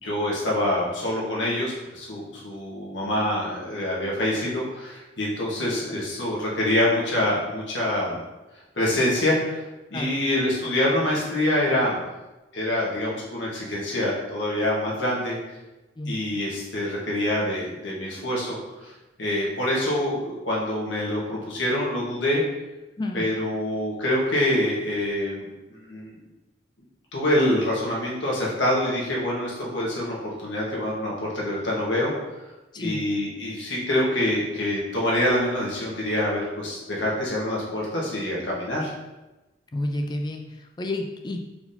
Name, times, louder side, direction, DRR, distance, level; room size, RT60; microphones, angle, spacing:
voice 1, 0.0-8.2 8.7-9.6 9.9-12.0 12.5-15.4 16.1-18.9 19.2-22.4 23.1-25.4 25.7-26.1 27.1-32.1 32.8-38.9, left 1 dB, 80° left, -4 dB, 1.4 m, -25 dB
voice 2, 39.7-41.4, left 1 dB, 20° left, 3 dB, 0.3 m, -30 dB
4.6 x 3.8 x 2.7 m, 1.1 s
head